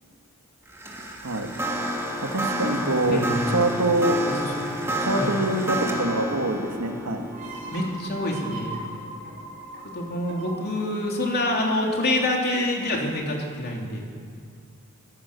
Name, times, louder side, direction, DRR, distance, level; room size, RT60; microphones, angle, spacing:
sound 1, 0.7-10.0, equal, 10° right, 2.5 m, -30 dB
voice 1, 2.2-4.2 5.0-7.3, right 2 dB, 85° right, 3 dB, 2.2 m, -25 dB
voice 2, 3.1-3.4 4.3-4.7 5.1-5.4 7.7-8.8 9.9-14.1, left 1 dB, 50° left, 0 dB, 3.4 m, -26 dB
sound 2, 7.3-12.8, right 2 dB, 40° right, 4.1 m, -40 dB
23.0 x 17.0 x 7.0 m, 2.2 s
head